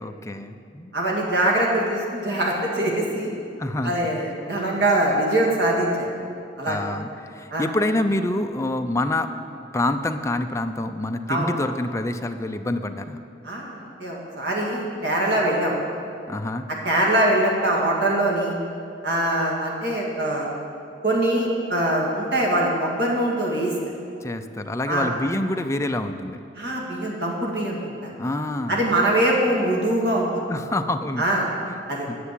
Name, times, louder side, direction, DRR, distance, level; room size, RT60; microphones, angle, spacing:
voice 1, 0.0-0.9 3.3-4.1 6.6-9.3 9.7-13.2 16.3-16.7 24.2-26.4 28.2-28.9 30.5-31.3 31.6-31.8 32.1-32.2, left 1 dB, 15° left, 7 dB, 0.5 m, -27 dB
voice 2, 0.9-3.3 3.8-6.1 6.6-6.8 7.5-7.7 11.3-11.5 13.4-15.8 16.8-18.5 19.0-20.5 21.0-23.8 24.9-25.1 26.5-28.1 28.7-30.4 31.2-31.5 31.9-32.1, right 1 dB, 65° right, -2 dB, 2.1 m, -23 dB
9.5 x 6.9 x 8.3 m, 2.5 s
head